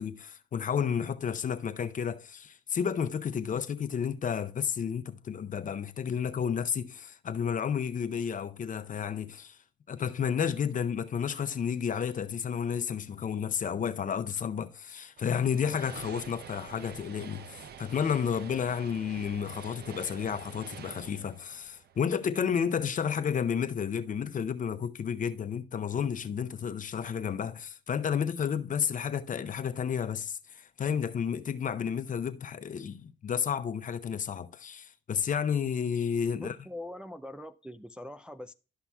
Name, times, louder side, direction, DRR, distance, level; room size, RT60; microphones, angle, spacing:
voice 1, 0.0-9.6 9.9-36.6, left 7 dB, 40° left, 0.6 m, -31 dB
sound 1, 15.2-22.6, right 8 dB, 55° right, 0.6 m, -47 dB
voice 2, 36.3-38.5, left 1 dB, 5° right, 0.3 m, -42 dB
12.0 x 5.7 x 2.3 m
cardioid pair, 90°, 20 cm